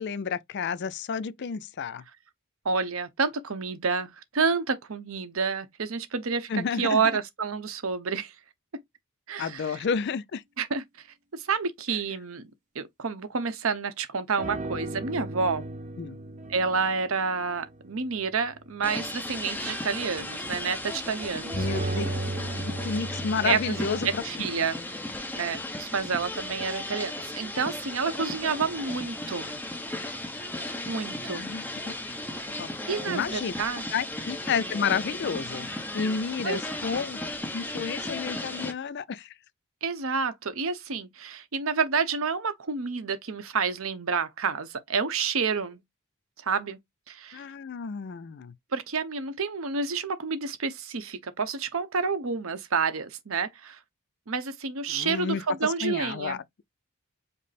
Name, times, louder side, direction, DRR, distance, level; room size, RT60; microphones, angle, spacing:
voice 1, 0.0-2.0 6.5-7.1 9.4-10.4 16.0-16.2 21.6-22.1 22.8-24.2 31.3-31.9 32.5-32.7 33.1-33.5 33.9-35.7 35.9-37.2 37.5-39.3 47.3-48.5 54.9-56.4, left 6 dB, 50° left, 0.4 m, -31 dB
voice 2, 2.6-6.5 6.8-8.3 9.3-9.8 10.6-10.8 11.3-12.5 12.7-15.6 16.5-21.9 23.4-24.7 25.3-29.6 30.8-31.5 32.9-33.9 36.4-36.6 39.8-45.8 46.4-46.8 47.1-47.4 48.7-53.8 54.3-56.4, right 5 dB, 65° right, 0.8 m, -29 dB
sound 1, 14.4-17.1 17.4-17.6 21.4-24.2, right 2 dB, 35° right, 0.5 m, -34 dB
sound 2, 18.8-38.7, left 1 dB, 10° left, 0.8 m, -36 dB
5.3 x 2.0 x 4.1 m
head